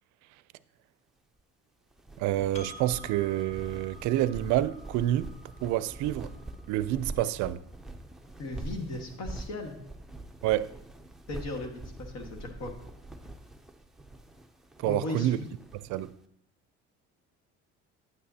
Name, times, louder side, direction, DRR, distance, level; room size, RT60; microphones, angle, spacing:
sound 1, 1.9-16.1, right 2 dB, ahead, 0.5 m, -44 dB
voice 1, 2.2-5.3 5.6-6.3 6.7-7.6 10.4-10.7 14.8-15.4 15.7-16.1, right 14 dB, 75° right, 0.4 m, -28 dB
Percussion, 2.5-7.4, equal, 20° left, 1.0 m, -51 dB
voice 2, 8.4-9.8 11.3-12.7 14.8-15.5, left 2 dB, 65° left, 1.6 m, -37 dB
9.4 x 8.7 x 2.8 m
cardioid pair, 110°, 30 cm